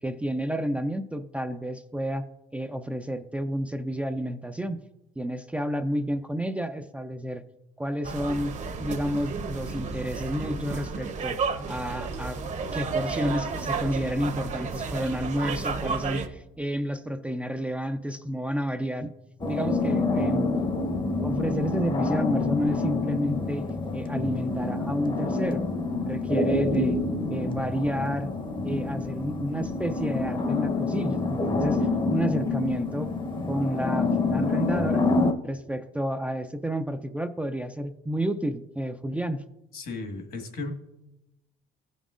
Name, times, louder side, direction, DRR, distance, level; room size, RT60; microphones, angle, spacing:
voice 1, 0.0-2.3 2.5-4.8 5.2-7.4 7.8-8.5 8.8-11.4 11.7-12.4 12.7-19.1 19.5-20.5 21.2-23.7 23.9-25.6 26.0-27.0 27.3-28.3 28.6-33.1 33.5-35.0 35.4-39.4, equal, 10° right, 7 dB, 0.4 m, -30 dB
sound 1, 8.0-16.3, right 4 dB, 45° right, 0.9 m, -32 dB
sound 2, 19.4-35.3, left 3 dB, 30° left, 0.8 m, -27 dB
voice 2, 39.7-40.7, left 3 dB, 60° left, 4 dB, 1.6 m, -35 dB
15.0 x 5.4 x 2.5 m, 0.90 s
cardioid pair, 110°, 17 cm